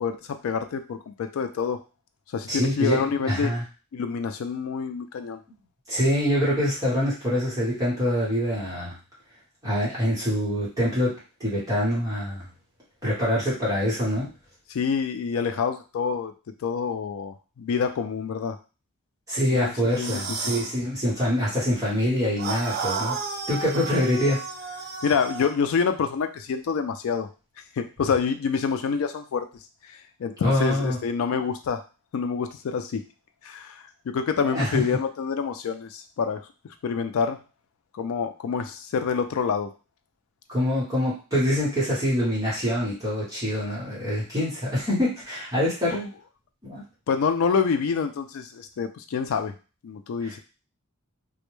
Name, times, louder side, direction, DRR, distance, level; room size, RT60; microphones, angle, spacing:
voice 1, 0.0-1.8 2.3-3.5 3.9-5.4 14.7-16.3 16.6-18.6 19.5-20.2 25.0-27.3 27.8-29.5 30.2-31.8 32.1-33.0 33.4-36.4 36.8-37.4 37.9-39.7 47.1-49.5 49.8-50.4, left 6 dB, 65° left, 7 dB, 0.3 m, -27 dB
voice 2, 2.5-3.6 5.9-8.9 9.6-11.1 11.4-12.5 13.0-14.3 19.3-23.2 23.5-24.4 30.4-31.0 34.4-34.8 40.5-46.1 46.6-46.8 50.2-50.4, equal, 15° right, -8 dB, 0.9 m, -25 dB
sound 1, 19.9-20.7 22.4-25.5, right 4 dB, 45° right, 0.5 m, -32 dB
2.1 x 2.1 x 3.0 m, 0.33 s
head